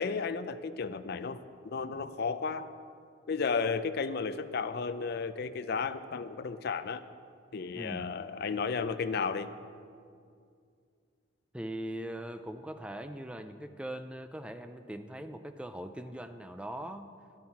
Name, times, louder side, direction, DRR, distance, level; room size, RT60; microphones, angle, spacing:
voice 1, 0.0-2.7 3.3-7.0 7.5-9.5, left 5 dB, 50° left, 11 dB, 0.5 m, -33 dB
voice 2, 7.7-8.1 11.5-17.1, right 1 dB, 5° right, 9 dB, 0.4 m, -41 dB
11.5 x 11.5 x 5.8 m, 2.3 s
head